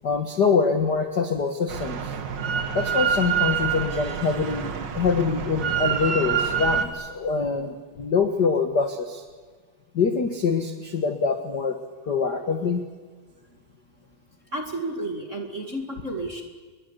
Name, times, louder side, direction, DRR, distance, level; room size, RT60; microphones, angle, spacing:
voice 1, 0.0-2.1 2.7-9.2 9.9-11.8 12.1-12.8, left 5 dB, 55° left, 6 dB, 1.2 m, -24 dB
Drill, 1.7-6.9, right 7 dB, 55° right, 1.2 m, -26 dB
voice 2, 14.5-16.4, right 1 dB, 25° right, 3 dB, 1.7 m, -31 dB
28.0 x 22.0 x 8.1 m, 1.5 s
omnidirectional pair, 4.3 m